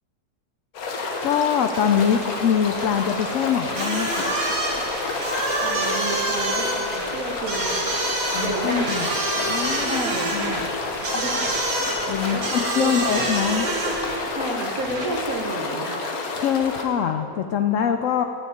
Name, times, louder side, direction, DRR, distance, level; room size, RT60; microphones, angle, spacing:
sound 1, 0.7-16.8, left 3 dB, 60° left, 1.4 m, -30 dB
voice 1, 1.2-4.3 8.3-9.1 9.4-10.6 11.8-13.7 16.4-18.2, left 8 dB, 80° left, 7 dB, 0.7 m, -24 dB
sound 2, 1.5-15.4, right 1 dB, 40° right, 1.8 m, -38 dB
sound 3, 3.7-14.2, right 2 dB, 75° right, 2.3 m, -27 dB
voice 2, 5.6-9.1 9.8-10.7 11.0-11.3 12.3-12.5 12.8-12.9 14.3-16.1, right 2 dB, 55° right, 2 dB, 1.4 m, -31 dB
9.2 x 6.7 x 8.5 m, 2.8 s
omnidirectional pair, 1.9 m